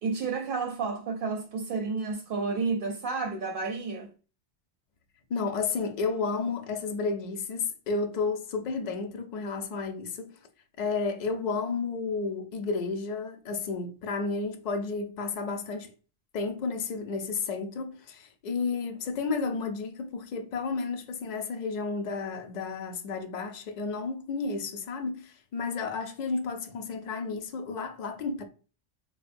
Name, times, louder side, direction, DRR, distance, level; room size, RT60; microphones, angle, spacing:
voice 1, 0.0-4.1, right 4 dB, 60° right, 0.7 m, -31 dB
voice 2, 5.3-10.3 10.8-15.9 16.3-28.4, left 4 dB, 55° left, 0.5 m, -32 dB
4.1 x 2.1 x 2.5 m
omnidirectional pair, 1.1 m